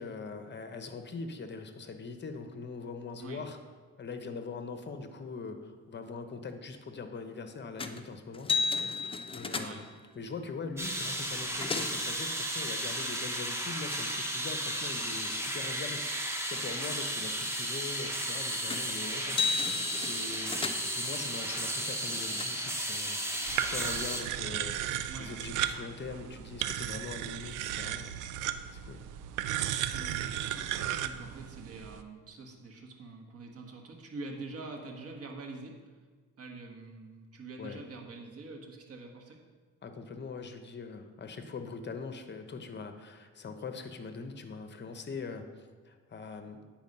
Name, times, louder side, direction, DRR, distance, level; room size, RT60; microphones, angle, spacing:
voice 1, 0.0-3.6 4.0-9.0 9.3-9.8 10.1-16.2 16.5-23.2 23.6-24.8 25.2-28.2 28.7-29.0 37.6-37.8 39.8-45.5 45.8-46.6, left 4 dB, 35° left, 8 dB, 0.8 m, -42 dB
sound 1, 7.8-8.1 8.3-10.0 11.0-11.1 11.3-12.1 18.7-19.0 19.2-21.0 21.8-22.4, left 5 dB, 20° left, 0.5 m, -34 dB
voice 2, 9.5-9.8 25.1-25.3 29.9-35.7 36.4-39.4, right 3 dB, 50° right, 2 dB, 1.4 m, -45 dB
sound 2, 10.8-24.2, right 1 dB, 10° right, 1.0 m, -34 dB
sound 3, 23.5-32.0, right 11 dB, 90° right, 0.5 m, -35 dB
9.1 x 4.6 x 5.4 m, 1.5 s
cardioid pair, 90°, 30 cm